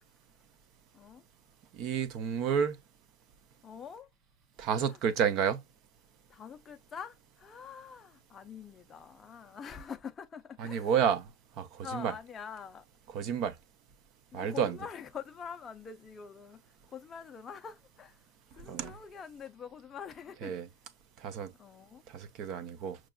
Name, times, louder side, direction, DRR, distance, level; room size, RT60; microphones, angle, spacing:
voice 1, 0.9-1.2 3.6-4.1 4.8-5.0 6.3-10.9 11.8-12.9 14.3-16.6 16.9-18.2 18.5-20.5 21.6-22.0, left 7 dB, 15° left, 0.5 m, -45 dB
voice 2, 1.7-2.8 4.6-5.6 10.6-11.3 11.6-12.1 13.1-13.5 14.3-14.8 18.7-18.9 20.4-20.7 21.2-21.5 22.1-23.0, right 7 dB, 35° right, 0.5 m, -30 dB
6.0 x 2.4 x 2.3 m
supercardioid pair, 165°, 0 cm